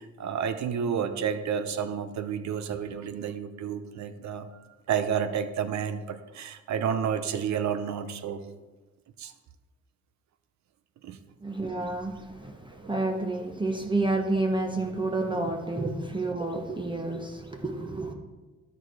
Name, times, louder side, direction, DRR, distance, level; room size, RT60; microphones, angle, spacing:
voice 1, 0.0-4.5 4.9-8.4 9.2-9.3 11.0-11.2 12.7-12.8, right 7 dB, 65° right, 11 dB, 0.8 m, -30 dB
voice 2, 11.4-18.1, right 2 dB, 15° right, 3 dB, 1.1 m, -30 dB
13.0 x 4.6 x 4.7 m, 1.2 s
cardioid pair, 90°, 30 cm